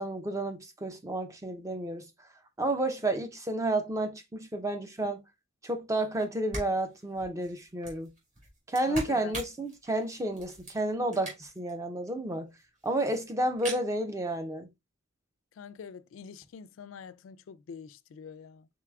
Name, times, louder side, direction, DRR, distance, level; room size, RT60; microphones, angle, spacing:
voice 1, 0.0-2.0 2.6-5.2 5.6-8.1 8.7-12.5 12.8-14.7, right 1 dB, 15° right, 0.5 m, -31 dB
sound 1, 6.2-6.3 6.5-11.7 12.1-12.2 12.3-12.4 12.6-13.1 13.4-13.8, right 2 dB, 40° right, 2.0 m, -42 dB
voice 2, 8.9-9.3 15.6-18.7, left 6 dB, 80° left, 0.3 m, -45 dB
4.7 x 4.0 x 2.3 m
head